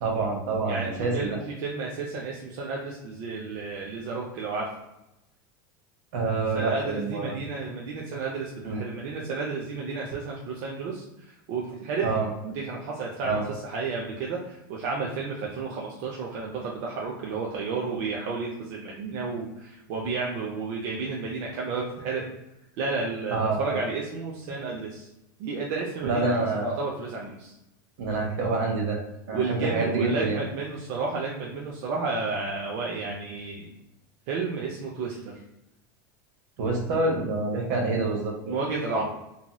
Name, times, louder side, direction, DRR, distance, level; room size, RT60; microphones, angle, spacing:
voice 1, 0.0-1.4 6.1-7.4 8.6-8.8 12.0-12.3 13.2-13.4 23.3-23.8 26.0-26.8 28.0-29.0 29.3-30.4 36.6-38.5 39.0-39.1, right 3 dB, 75° right, 1 dB, 0.9 m, -27 dB
voice 2, 0.7-4.7 6.5-12.1 12.4-22.3 22.8-25.1 25.4-27.5 29.3-33.7 34.3-35.3 38.5-39.0, right 4 dB, 55° right, -2 dB, 0.5 m, -32 dB
2.9 x 2.7 x 2.2 m, 0.89 s
supercardioid pair, 150°, 11 cm